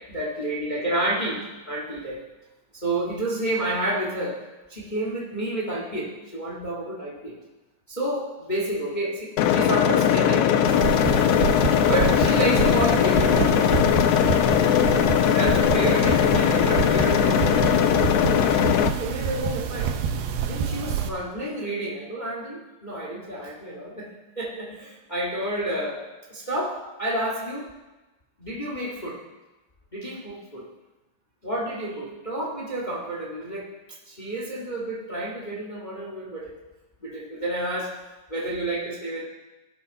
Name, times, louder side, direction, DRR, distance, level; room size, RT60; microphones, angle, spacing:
voice 1, 0.1-2.2 2.7-4.4 4.7-7.4 7.9-10.5 11.4-11.5 11.8-13.7 15.3-18.3 19.0-19.9 20.4-24.1 24.4-26.0 26.3-27.7 28.4-29.2 29.9-30.7 31.4-33.7 34.0-36.5 37.0-37.9 38.3-39.2, right 1 dB, 25° left, -2 dB, 0.9 m, -30 dB
sound 1, 9.4-18.9, left 9 dB, 90° left, 1.7 m, -20 dB
sound 2, 10.7-21.1, right 7 dB, 80° right, 2.7 m, -28 dB
17.5 x 11.5 x 4.1 m, 1.1 s
omnidirectional pair, 4.3 m